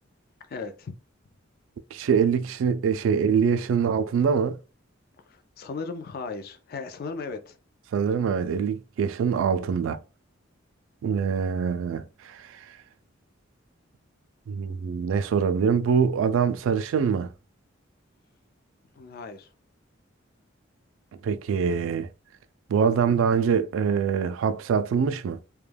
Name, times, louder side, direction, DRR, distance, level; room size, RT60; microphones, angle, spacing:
voice 1, 0.5-0.9 5.3-7.6 19.0-19.5, left 4 dB, 50° left, 0.4 m, -36 dB
voice 2, 1.9-4.6 7.9-10.0 11.0-12.5 14.5-17.3 21.2-22.1 22.7-25.4, right 6 dB, 75° right, 0.3 m, -24 dB
2.2 x 2.2 x 3.2 m
head